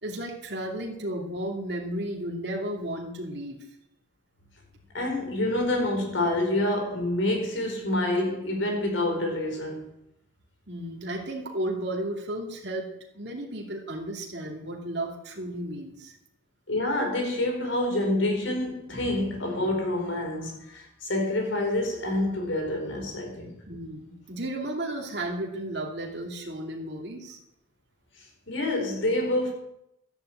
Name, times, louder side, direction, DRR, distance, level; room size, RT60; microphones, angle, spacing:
voice 1, 0.0-3.6 10.7-12.9 13.1-16.2 23.7-27.4, right 1 dB, 55° right, 2.7 m, -33 dB
voice 2, 4.9-9.9 16.7-23.6 28.5-29.5, left 1 dB, 70° left, 4.6 m, -27 dB
12.5 x 10.5 x 8.0 m
head